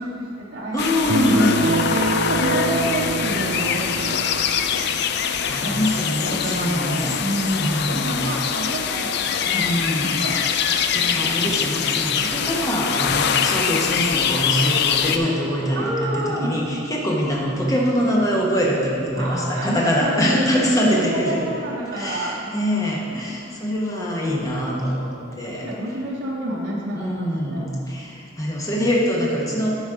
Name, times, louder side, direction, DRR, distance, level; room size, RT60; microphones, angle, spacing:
voice 1, 0.0-0.9 1.2-4.6 5.6-9.6 10.0-10.4 15.7-16.5 19.1-22.4 25.4-27.7, right 1 dB, 65° right, -4 dB, 1.1 m, -28 dB
voice 2, 0.7-1.7 5.5-7.2 7.6-8.4 9.5-10.4 10.9-21.4 21.9-25.7 26.9-29.7, equal, 15° left, -4 dB, 1.1 m, -24 dB
sound 1, 0.8-15.2, left 7 dB, 55° left, 0.4 m, -23 dB
sound 2, 1.1-4.6, right 3 dB, 45° right, 0.3 m, -25 dB
10.5 x 4.2 x 5.0 m, 2.6 s
head